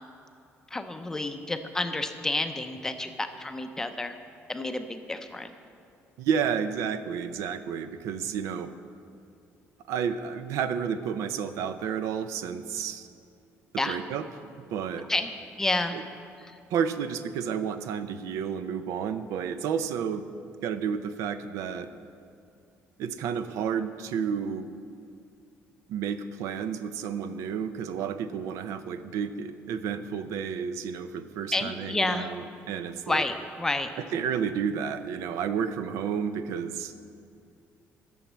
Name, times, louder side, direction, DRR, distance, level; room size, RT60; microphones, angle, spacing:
voice 1, 0.7-4.1 4.5-5.5 13.8-14.0 15.1-15.3 15.6-16.0 31.5-32.3 33.1-33.9, left 2 dB, 10° left, 7 dB, 0.5 m, -29 dB
voice 2, 6.2-8.7 9.9-13.1 13.7-14.3 14.7-15.1 15.9-16.0 16.7-20.2 20.6-21.9 23.0-24.7 25.9-33.2 34.1-36.9, right 7 dB, 80° right, 11 dB, 0.6 m, -31 dB
12.0 x 7.1 x 7.3 m, 2.5 s
cardioid pair, 170°, 5 cm